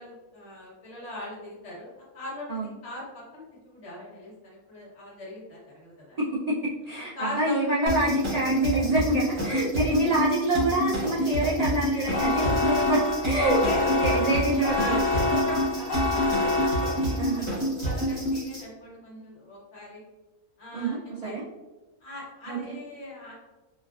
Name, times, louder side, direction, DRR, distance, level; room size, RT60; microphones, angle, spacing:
voice 1, 0.0-6.2 6.9-7.5 9.5-9.6 13.4-14.0 14.7-15.0 15.3-16.2 16.8-20.0 20.6-21.3 22.0-23.3, left 2 dB, 55° left, -5 dB, 1.3 m, -40 dB
voice 2, 6.2-15.3 17.2-17.5 20.7-21.4 22.5-22.8, right 2 dB, 75° right, -6 dB, 0.3 m, -27 dB
sound 1, 7.9-18.6, equal, 25° right, 0.9 m, -28 dB
sound 2, 12.1-17.4, left 3 dB, 75° left, 1.2 m, -27 dB
4.2 x 2.4 x 2.4 m, 1.1 s
omnidirectional pair, 1.4 m